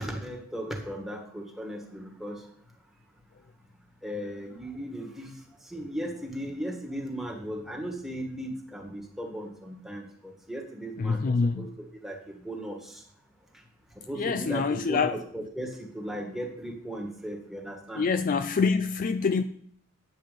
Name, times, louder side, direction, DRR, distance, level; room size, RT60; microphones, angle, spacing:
voice 1, 0.0-2.4 4.0-5.3 5.6-13.0 14.1-18.1, right 1 dB, ahead, 1.6 m, -37 dB
voice 2, 11.0-11.7 14.1-15.2 18.0-19.4, left 5 dB, 40° left, 0.3 m, -26 dB
9.2 x 7.5 x 5.1 m
head